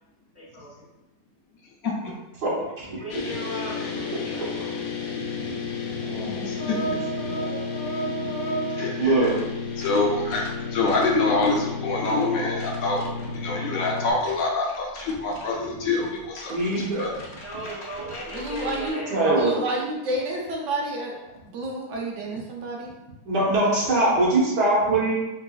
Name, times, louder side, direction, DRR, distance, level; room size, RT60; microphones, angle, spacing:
voice 1, 0.3-0.8 2.8-4.4 17.4-19.2 23.4-23.7, equal, 15° right, -7 dB, 0.5 m, -37 dB
voice 2, 1.8-2.1 3.8-3.9 5.1-5.2 6.4-7.0 7.3-7.4 8.7-9.3 9.8-13.0 13.3-16.5 17.0-17.1, left 3 dB, 70° left, -1 dB, 0.9 m, -26 dB
voice 3, 2.4-3.0 4.6-4.7 6.0-7.0 7.2-7.7 9.0-9.4 16.5-17.1 19.1-19.5 23.3-25.1, right 2 dB, 85° right, -6 dB, 1.8 m, -23 dB
sound 1, 3.1-14.1, left 5 dB, 85° left, 1.2 m, -32 dB
sound 2, 5.8-9.4 9.8-10.0 10.3-10.5 10.8-11.0 11.4-11.6 12.0-12.2 12.6-18.9, right 3 dB, 50° left, 0.6 m, -35 dB
voice 4, 18.3-19.0 19.4-21.1 21.5-22.9, right 1 dB, 60° right, -1 dB, 0.9 m, -29 dB
4.6 x 2.8 x 2.4 m, 0.99 s
omnidirectional pair, 1.7 m